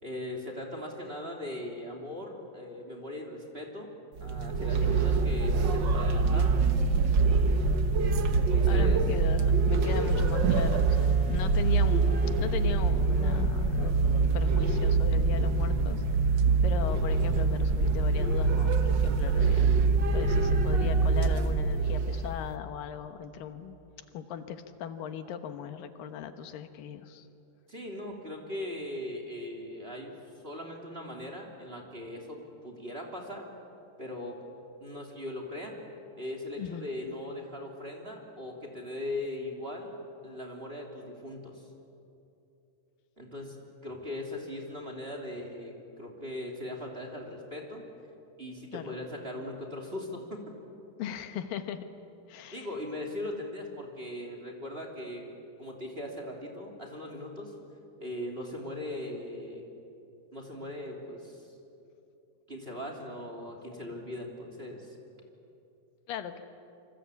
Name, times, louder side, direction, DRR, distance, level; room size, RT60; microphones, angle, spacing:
voice 1, 0.0-3.9 4.2-6.6 8.3-9.0 27.7-30.1 30.4-33.5 34.0-34.4 34.8-35.8 36.2-39.9 40.2-41.7 43.2-43.6 43.8-47.8 48.4-50.4 52.5-55.3 55.6-57.5 58.0-59.6 60.3-61.5 62.5-64.9, left 1 dB, 15° right, 1 dB, 2.9 m, -39 dB
sound 1, 4.2-22.4, right 4 dB, 75° right, 1.0 m, -25 dB
voice 2, 8.7-16.0 16.6-19.7 20.1-23.8 24.1-27.3 36.6-36.9 48.7-49.0 51.0-51.8 52.3-52.7 66.1-66.4, left 8 dB, 90° left, 8 dB, 3.0 m, -38 dB
Wind instrument woodwind instrument, 9.5-13.2, left 2 dB, 60° right, 4.2 m, -47 dB
27.0 x 25.5 x 8.4 m, 2.7 s
omnidirectional pair, 3.9 m